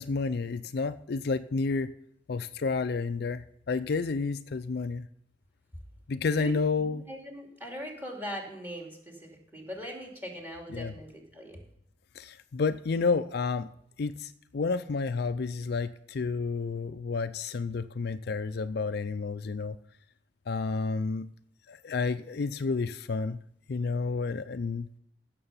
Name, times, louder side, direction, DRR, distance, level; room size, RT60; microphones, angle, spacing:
voice 1, 0.0-1.9 2.3-5.1 6.1-7.0 10.7-10.9 12.2-13.7 14.0-19.7 20.5-21.3 21.7-23.4 23.7-24.9, left 4 dB, 55° left, 11 dB, 0.4 m, -30 dB
voice 2, 6.4-11.6, equal, 10° right, 1 dB, 2.7 m, -41 dB
16.0 x 6.9 x 5.6 m, 0.73 s
head